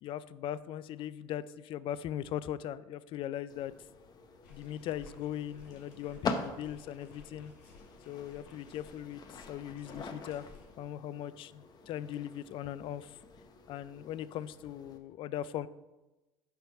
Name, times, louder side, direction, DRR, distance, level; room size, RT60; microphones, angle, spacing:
voice 1, 0.0-3.7 4.5-7.5 8.1-9.2 9.5-10.5 10.8-13.2 13.7-15.7, left 11 dB, 55° left, 17 dB, 0.4 m, -39 dB
sound 1, 3.5-15.0, left 4 dB, 40° left, 0.9 m, -44 dB
sound 2, 4.4-10.6, left 4 dB, 85° left, 2.6 m, -57 dB
8.8 x 3.5 x 5.3 m, 1.1 s
supercardioid pair, 85°, 11 cm